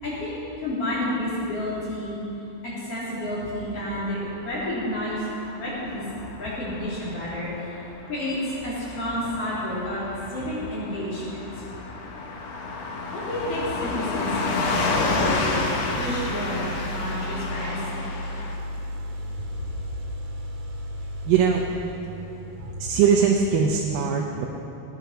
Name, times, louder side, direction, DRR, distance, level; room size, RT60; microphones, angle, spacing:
voice 1, 0.0-2.2 2.6-5.2 5.5-6.0 6.3-7.5 8.1-8.4 8.6-11.4 13.1-15.6 15.9-17.8 22.6-22.7, left 1 dB, 45° left, -8 dB, 4.2 m, -30 dB
Car passing by / Truck, 4.2-18.6, left 3 dB, 60° left, 2.1 m, -31 dB
sound 1, 15.8-23.0, equal, 50° right, 3.4 m, -35 dB
voice 2, 21.3-21.6 22.6-24.5, right 7 dB, 75° right, 1 dB, 2.4 m, -21 dB
16.5 x 10.5 x 5.7 m, 3.0 s
omnidirectional pair, 4.0 m